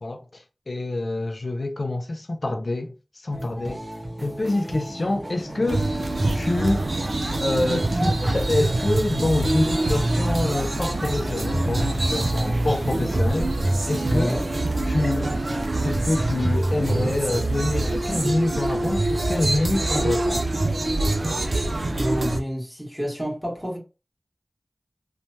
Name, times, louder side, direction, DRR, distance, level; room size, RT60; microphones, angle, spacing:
voice 1, 0.0-3.8 4.2-5.9 6.3-6.8 7.4-13.5 13.9-14.3 14.9-15.5 15.8-20.5, left 2 dB, 70° left, 0.3 m, -26 dB
sound 1, 3.3-17.8, right 1 dB, 50° right, 0.8 m, -36 dB
sound 2, 5.7-22.4, right 2 dB, 85° right, 0.4 m, -24 dB
voice 2, 14.1-14.5 21.9-23.8, equal, 5° right, 1.4 m, -28 dB
3.0 x 2.2 x 2.7 m
wide cardioid pair, 45°, 0 cm